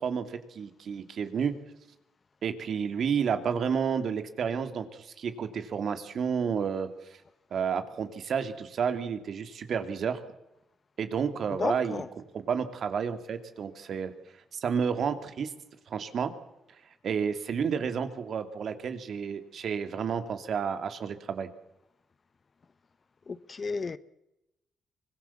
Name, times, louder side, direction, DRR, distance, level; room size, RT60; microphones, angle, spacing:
voice 1, 0.0-1.5 2.4-6.9 7.5-10.2 11.0-14.1 14.5-15.5 15.9-16.3 17.0-21.5, right 6 dB, 55° right, 2.6 m, -31 dB
voice 2, 11.6-12.1 23.3-24.0, left 4 dB, 35° left, 0.9 m, -32 dB
24.5 x 20.5 x 7.3 m
cardioid pair, 90°, 0 cm